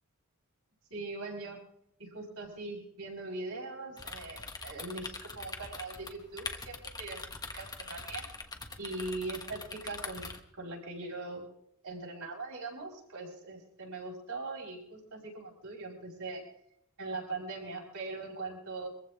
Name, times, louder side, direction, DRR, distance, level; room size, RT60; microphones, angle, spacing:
voice 1, 0.9-1.6 2.0-7.2 7.5-8.3 8.8-10.3 10.6-11.4 11.8-16.4 17.0-18.9, right 3 dB, 85° right, -2 dB, 5.6 m, -41 dB
sound 1, 4.0-10.4, left 3 dB, 20° left, 1.3 m, -43 dB
23.5 x 15.0 x 3.7 m, 0.74 s
head